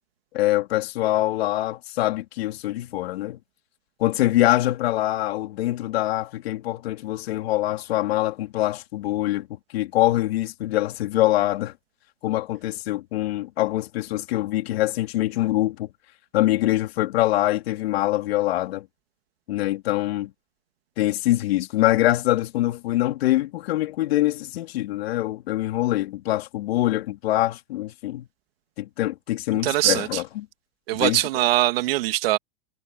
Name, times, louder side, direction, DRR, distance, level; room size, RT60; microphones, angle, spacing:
voice 1, 0.3-3.4 4.0-11.7 12.2-15.9 16.3-18.9 19.5-20.3 21.0-28.3 28.8-30.5 30.9-31.2, left 15 dB, 70° left, 3.9 m, -24 dB
voice 2, 29.6-30.2 30.9-32.4, right 17 dB, 65° right, 2.2 m, -22 dB
supercardioid pair, 160°, 32 cm